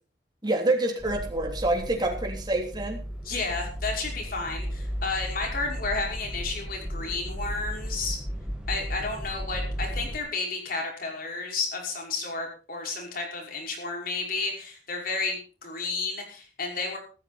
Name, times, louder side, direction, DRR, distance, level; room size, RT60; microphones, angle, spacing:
voice 1, 0.4-3.0, right 2 dB, 25° right, 1 dB, 3.3 m, -27 dB
sound 1, 1.0-10.2, equal, 5° right, 2.4 m, -35 dB
voice 2, 3.2-8.2 8.7-17.0, left 3 dB, 55° left, 1 dB, 5.6 m, -32 dB
15.0 x 13.5 x 4.3 m, 0.36 s
head